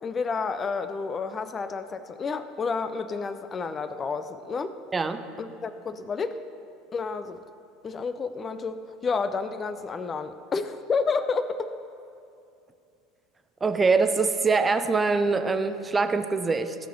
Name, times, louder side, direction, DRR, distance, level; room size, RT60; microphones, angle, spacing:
voice 1, 0.0-4.7 5.4-6.4 6.9-7.4 7.8-11.7, left 4 dB, 30° left, 11 dB, 0.5 m, -30 dB
voice 2, 13.6-16.8, right 4 dB, 20° right, 9 dB, 0.7 m, -23 dB
16.5 x 6.6 x 5.3 m, 2.6 s
figure-of-eight pair, 70°, 0 cm